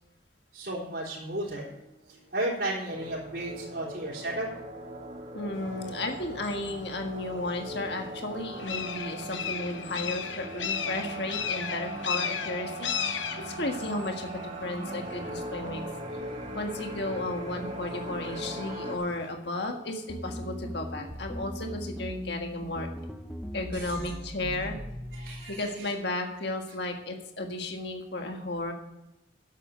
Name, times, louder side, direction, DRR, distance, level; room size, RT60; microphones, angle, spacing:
voice 1, 0.5-4.5 23.7-24.1 25.1-25.9, right 1 dB, 60° right, -8 dB, 3.6 m, -34 dB
sound 1, 2.9-19.0, right 1 dB, 35° right, 2.1 m, -39 dB
voice 2, 5.3-15.8 16.5-22.9 23.5-24.8 25.2-28.7, left 2 dB, 60° left, 3 dB, 1.6 m, -34 dB
sound 2, 5.5-19.3, left 8 dB, 80° left, 0.9 m, -38 dB
sound 3, 20.1-25.4, equal, ahead, 0.9 m, -38 dB
11.5 x 8.3 x 6.2 m, 0.93 s
head